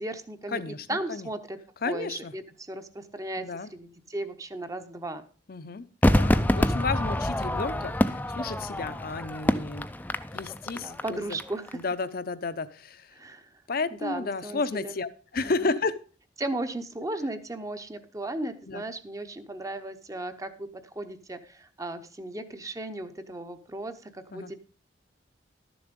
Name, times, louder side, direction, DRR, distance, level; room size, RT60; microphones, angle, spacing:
voice 1, 0.0-1.6 1.9-5.2 10.7-11.8 13.1-13.5 14.0-15.0 15.4-15.8 16.4-24.6, right 1 dB, 20° right, 9 dB, 0.8 m, -36 dB
voice 2, 0.5-1.3 1.8-2.3 3.4-3.7 5.5-9.9 10.3-11.4 11.7-13.1 13.7-16.0 18.7-18.8 24.3-24.5, left 4 dB, 55° left, 14 dB, 0.7 m, -32 dB
Crowd / Fireworks, 6.0-11.4 11.7-11.8, left 1 dB, 10° left, 0.4 m, -26 dB
12.0 x 7.0 x 5.2 m, 0.39 s
head